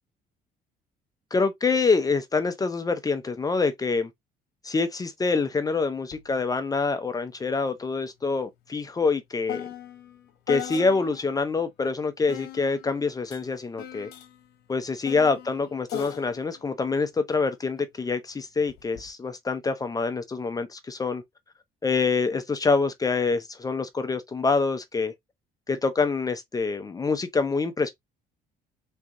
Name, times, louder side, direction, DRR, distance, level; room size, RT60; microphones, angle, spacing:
voice 1, 1.3-4.1 4.6-9.7 10.5-14.1 14.7-21.2 21.8-25.1 25.7-27.9, left 4 dB, 20° left, 0.6 m, -26 dB
sound 1, 6.1-6.3 6.6-11.4 12.3-17.8 18.7-19.1, left 11 dB, 75° left, 1.0 m, -40 dB
3.6 x 3.3 x 2.6 m
cardioid pair, 110°, 17 cm